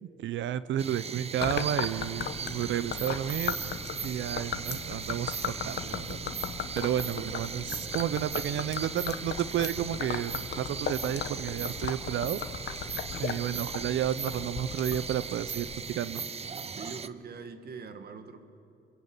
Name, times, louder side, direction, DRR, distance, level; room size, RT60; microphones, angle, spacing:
voice 1, 0.0-3.6 4.0-6.3 6.8-12.4 13.2-16.2, right 10 dB, 70° right, 16 dB, 0.8 m, -32 dB
sound 1, 0.8-17.1, right 5 dB, 30° right, 0.8 m, -38 dB
Gurgling / Liquid, 1.4-16.0, left 8 dB, 60° left, 1.3 m, -38 dB
voice 2, 13.2-13.6 16.7-18.5, right 5 dB, 50° right, 9 dB, 2.0 m, -43 dB
28.0 x 21.5 x 8.9 m, 2.8 s
cardioid pair, 90°, 20 cm